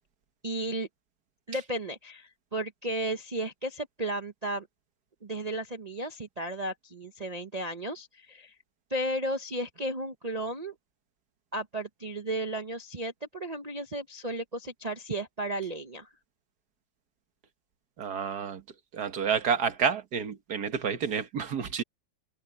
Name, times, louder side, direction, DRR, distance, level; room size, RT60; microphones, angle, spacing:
voice 1, 0.4-0.9 1.5-4.7 5.2-8.5 8.9-10.7 11.5-16.1, right 1 dB, 85° right, 0.3 m, -34 dB
voice 2, 18.0-18.6 18.9-21.8, right 6 dB, 50° right, 1.7 m, -29 dB
omnidirectional pair, 2.4 m